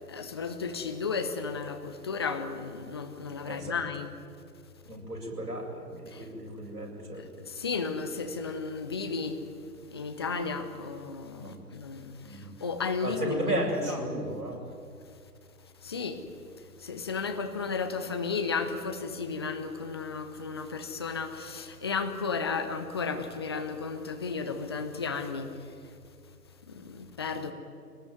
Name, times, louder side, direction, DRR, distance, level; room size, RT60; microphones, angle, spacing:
voice 1, 0.1-4.1 6.1-6.3 7.2-9.4 9.9-13.6 13.9-14.1 15.8-16.2 16.8-25.5 26.7-27.5, left 5 dB, 15° left, 7 dB, 0.9 m, -34 dB
voice 2, 3.4-3.8 4.9-7.3 11.4-11.6 12.2-12.5 13.0-14.6, right 1 dB, 70° right, -1 dB, 7.9 m, -34 dB
24.0 x 19.5 x 9.5 m, 2.4 s
figure-of-eight pair, 145°, 47 cm